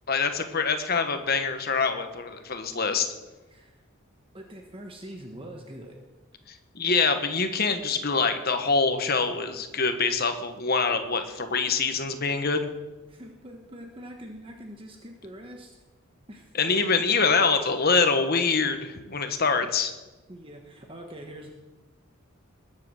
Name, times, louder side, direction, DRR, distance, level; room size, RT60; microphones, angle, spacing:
voice 1, 0.1-3.1 6.5-12.7 16.5-19.9, left 4 dB, 45° left, 7 dB, 1.2 m, -25 dB
voice 2, 4.3-6.0 13.1-15.7 16.3-16.6 20.3-21.5, right 1 dB, 25° right, 2 dB, 1.3 m, -43 dB
20.5 x 7.7 x 6.4 m, 1.2 s
head